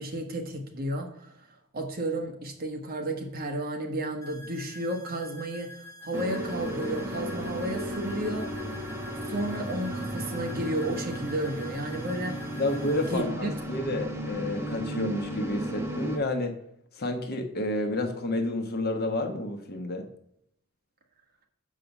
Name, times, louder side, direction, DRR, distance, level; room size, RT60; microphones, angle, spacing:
voice 1, 0.0-1.5 1.7-8.5 9.3-12.4 13.1-13.5, right 1 dB, 45° right, 3 dB, 1.3 m, -32 dB
sound 1, 4.2-13.2, left 1 dB, 15° left, 1.3 m, -48 dB
sound 2, 6.1-16.2, equal, 10° right, 1.0 m, -34 dB
voice 2, 12.6-16.5 17.0-20.1, left 1 dB, 45° left, 5 dB, 1.1 m, -30 dB
6.8 x 5.0 x 7.1 m, 0.71 s
head